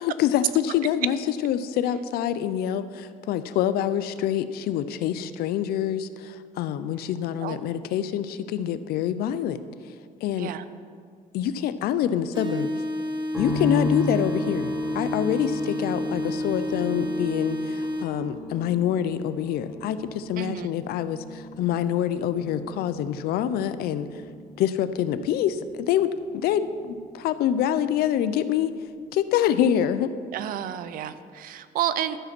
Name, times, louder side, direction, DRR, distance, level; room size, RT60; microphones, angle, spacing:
voice 1, 0.0-1.2 1.4-9.6 10.2-10.5 11.3-12.7 13.4-24.1 24.6-28.7 29.1-30.1, left 10 dB, 80° left, 13 dB, 0.5 m, -26 dB
sound 1, 12.3-18.3, left 1 dB, 30° right, 0.9 m, -30 dB
sound 2, 13.3-28.6 28.9-29.7, left 1 dB, ahead, 1.9 m, -37 dB
voice 2, 20.4-20.7 30.3-32.2, right 11 dB, 65° right, 13 dB, 0.5 m, -30 dB
12.5 x 5.1 x 6.0 m, 2.1 s
cardioid pair, 150°, 16 cm